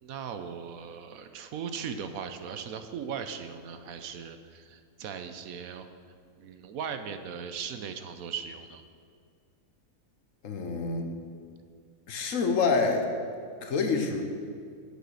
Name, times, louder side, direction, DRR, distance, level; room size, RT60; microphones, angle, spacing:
voice 1, 0.0-5.9 6.4-8.8, right 7 dB, 70° right, 8 dB, 1.1 m, -38 dB
voice 2, 10.4-11.1 12.1-13.1 13.6-14.2, left 4 dB, 60° left, 4 dB, 1.3 m, -27 dB
8.4 x 8.1 x 6.3 m, 2.2 s
omnidirectional pair, 1.6 m